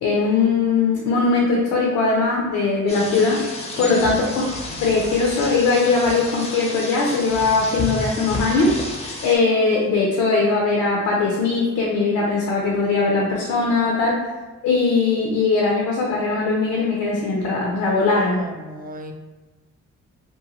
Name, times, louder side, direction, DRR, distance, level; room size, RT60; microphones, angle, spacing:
voice 1, 0.0-3.4 3.8-8.7 9.2-14.2 14.6-18.5, left 3 dB, 80° left, -3 dB, 0.6 m, -20 dB
sound 1, 2.9-9.4, left 2 dB, 20° left, 0.5 m, -31 dB
voice 2, 4.0-4.4 18.3-19.1, right 1 dB, 30° right, 4 dB, 0.4 m, -36 dB
2.7 x 2.2 x 2.9 m, 1.3 s
cardioid pair, 90°, 30 cm